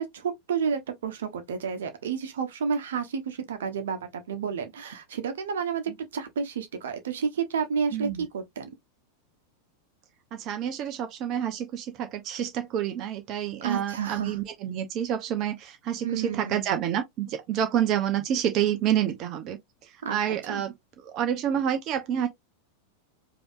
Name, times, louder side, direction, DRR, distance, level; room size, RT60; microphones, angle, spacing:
voice 1, 0.0-8.7 13.6-14.4 16.0-16.7 20.0-20.2 20.5-20.6, right 6 dB, 60° right, 1.1 m, -30 dB
voice 2, 7.9-8.3 10.3-20.7 21.0-22.3, right 10 dB, 35° right, 0.8 m, -28 dB
5.2 x 2.9 x 2.5 m
figure-of-eight pair, 90°, 0 cm